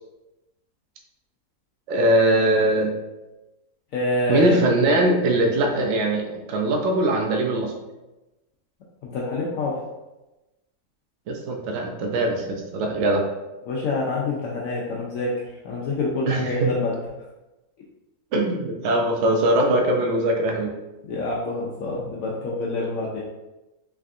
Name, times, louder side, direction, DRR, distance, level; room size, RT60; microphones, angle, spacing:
voice 1, 1.9-2.9 4.3-7.7 11.3-13.2 16.3-16.8 18.3-20.7 22.7-22.9, right 1 dB, 70° right, 1 dB, 0.7 m, -21 dB
voice 2, 3.9-4.6 9.0-9.8 13.7-17.0 21.1-23.2, left 2 dB, 70° left, -4 dB, 0.9 m, -26 dB
3.5 x 3.3 x 2.5 m, 1.0 s
omnidirectional pair, 1.7 m